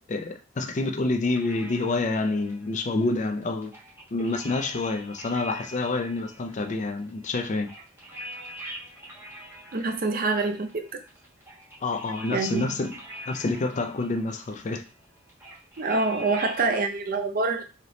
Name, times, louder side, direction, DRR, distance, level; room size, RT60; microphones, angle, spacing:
voice 1, 0.1-3.7 4.1-7.7 11.8-13.0 13.3-14.8, left 2 dB, 35° left, 0.4 m, -28 dB
sound 1, 1.2-16.6, equal, 10° right, 1.2 m, -44 dB
voice 2, 9.7-11.0 12.3-12.6 15.8-17.6, right 3 dB, 45° right, 0.5 m, -26 dB
3.3 x 2.8 x 3.9 m
head